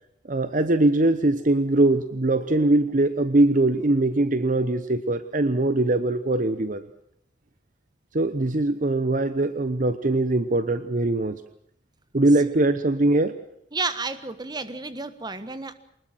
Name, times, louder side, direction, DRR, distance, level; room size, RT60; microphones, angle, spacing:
voice 1, 0.3-6.8 8.1-11.4 12.1-13.3, right 2 dB, 45° right, 12 dB, 0.9 m, -22 dB
voice 2, 13.7-15.7, right 3 dB, 25° right, 12 dB, 1.4 m, -31 dB
24.0 x 20.5 x 7.6 m, 0.72 s
head